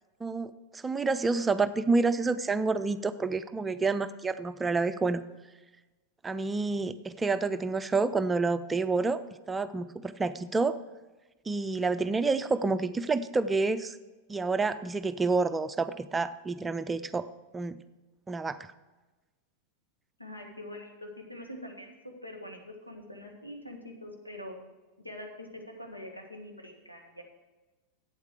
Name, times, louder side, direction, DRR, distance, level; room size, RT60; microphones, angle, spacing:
voice 1, 0.2-5.2 6.2-9.2 9.5-10.8 11.5-14.0 14.3-17.3 17.5-17.8 18.3-18.7, right 3 dB, 15° right, 11 dB, 0.4 m, -28 dB
voice 2, 20.2-22.6 22.9-24.6 25.0-27.2, left 1 dB, 85° left, 2 dB, 1.8 m, -44 dB
11.5 x 8.3 x 4.7 m, 1.2 s
figure-of-eight pair, 90°, 0 cm